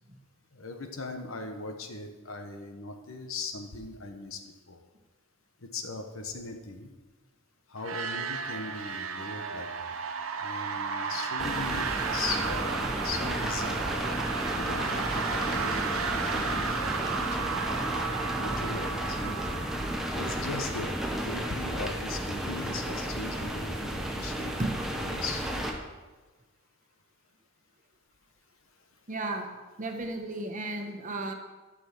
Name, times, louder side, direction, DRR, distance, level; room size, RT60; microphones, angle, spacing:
voice 1, 0.5-4.4 4.7-4.8 5.6-6.9 7.7-10.0 10.4-11.8 12.1-13.9 14.5-17.8 18.3-19.7 20.1-24.5 25.0-25.4, left 3 dB, 75° left, 5 dB, 1.2 m, -39 dB
sound 1, 7.8-21.5, right 5 dB, 80° right, 0.8 m, -34 dB
sound 2, 11.4-25.7, equal, ahead, 1.0 m, -33 dB
voice 2, 29.1-29.5 29.8-31.3, right 2 dB, 40° right, 4 dB, 1.2 m, -34 dB
11.5 x 6.2 x 6.0 m, 1.3 s
head